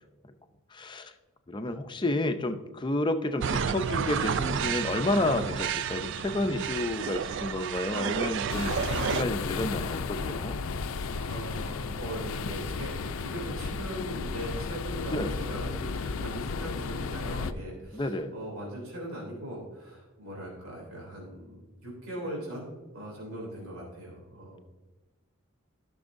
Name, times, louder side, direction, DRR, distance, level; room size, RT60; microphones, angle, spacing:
voice 1, 0.7-1.1 1.5-10.6 15.1-15.3 17.9-18.3, left 1 dB, 20° left, 8 dB, 0.5 m, -30 dB
sound 1, 3.4-9.2, right 7 dB, 55° right, 0.3 m, -31 dB
sound 2, 8.5-17.5, left 4 dB, 75° left, 0.5 m, -33 dB
voice 2, 11.1-24.6, right 1 dB, 85° right, -4 dB, 3.0 m, -40 dB
15.5 x 6.2 x 2.6 m, 1.2 s
head